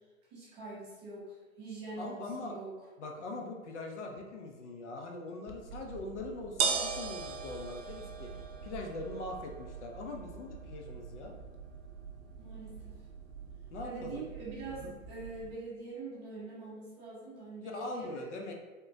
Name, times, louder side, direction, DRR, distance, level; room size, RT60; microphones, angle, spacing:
voice 1, 0.3-2.7 12.4-13.0 13.8-18.3, right 3 dB, 15° right, -9 dB, 0.6 m, -44 dB
voice 2, 2.0-2.6 3.0-11.4 13.7-14.3 14.7-14.9 17.6-18.5, left 2 dB, 55° left, 2 dB, 0.6 m, -42 dB
sound 1, 5.5-15.5, right 6 dB, 75° right, 0.6 m, -40 dB
3.5 x 2.1 x 2.5 m, 1.3 s
hypercardioid pair, 150°, 42 cm